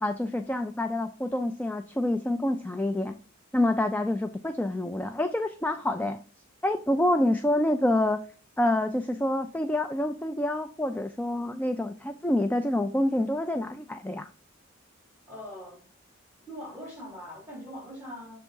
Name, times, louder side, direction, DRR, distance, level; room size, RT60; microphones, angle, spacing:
voice 1, 0.0-3.1 3.5-6.2 6.6-8.2 8.6-14.3, left 1 dB, 10° left, 0.3 m, -27 dB
voice 2, 15.3-15.9 16.5-18.4, equal, 10° right, 3.9 m, -42 dB
7.4 x 3.4 x 5.3 m
head